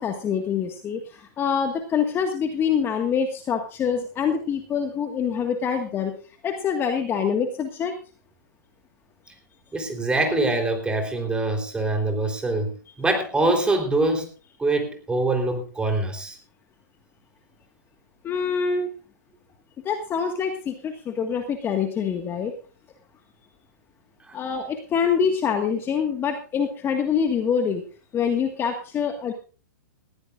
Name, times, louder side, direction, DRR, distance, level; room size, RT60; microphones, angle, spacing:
voice 1, 0.0-6.1 6.4-7.9 18.2-18.9 19.9-22.5 24.3-27.8 28.1-29.3, left 7 dB, 20° left, 5 dB, 1.7 m, -25 dB
voice 2, 9.7-12.7 13.0-14.3 14.6-16.4 24.3-24.4, right 2 dB, 10° right, 4 dB, 3.7 m, -24 dB
20.0 x 15.0 x 2.5 m, 0.36 s
hypercardioid pair, 130°, 10 cm